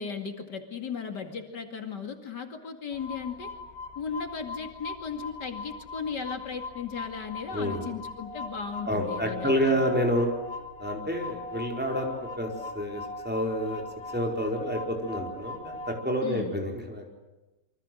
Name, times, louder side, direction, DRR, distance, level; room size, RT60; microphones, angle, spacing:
voice 1, 0.0-3.5 4.0-9.9 16.2-16.5, left 6 dB, 70° left, 5 dB, 2.9 m, -36 dB
sound 1, 2.9-16.0, left 3 dB, 35° left, 3.7 m, -40 dB
voice 2, 7.5-7.8 8.9-10.3 10.8-13.9 14.1-17.1, equal, 5° right, 1 dB, 4.8 m, -29 dB
27.5 x 24.5 x 7.9 m, 1.1 s
omnidirectional pair, 1.9 m